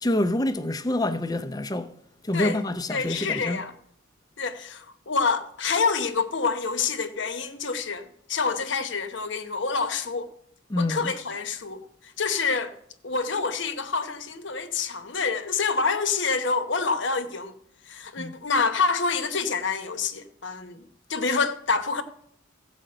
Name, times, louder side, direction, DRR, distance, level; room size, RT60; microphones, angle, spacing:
voice 1, 0.0-1.9 2.2-3.6 10.7-11.1 18.2-18.3, left 1 dB, 20° left, 0.5 m, -27 dB
voice 2, 2.9-3.7 4.4-10.3 10.8-12.7 13.0-17.5 17.9-22.0, left 4 dB, 65° left, 1.0 m, -27 dB
15.5 x 5.1 x 7.6 m
head